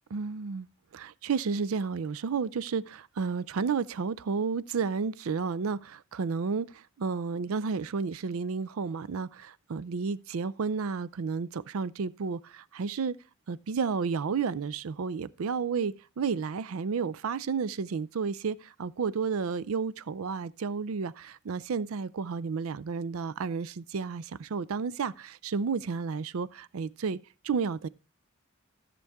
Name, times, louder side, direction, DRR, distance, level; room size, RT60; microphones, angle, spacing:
voice 1, 0.1-0.7 0.9-13.2 13.5-27.2 27.4-27.9, right 5 dB, 80° right, 0.5 m, -32 dB
14.0 x 6.8 x 3.5 m
head